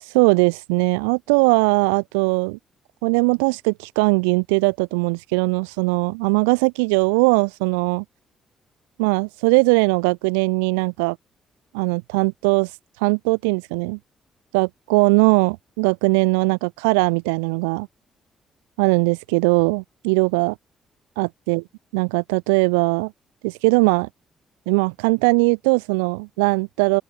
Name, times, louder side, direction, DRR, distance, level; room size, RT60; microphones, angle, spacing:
voice 1, 0.1-2.6 3.0-8.0 9.0-11.2 11.7-12.7 13.0-14.0 14.5-17.9 18.8-20.5 21.2-21.6 21.9-23.1 23.4-24.1 24.7-27.0, right 33 dB, 90° right, 6.0 m, -20 dB
open air
hypercardioid pair, 50°, 0 cm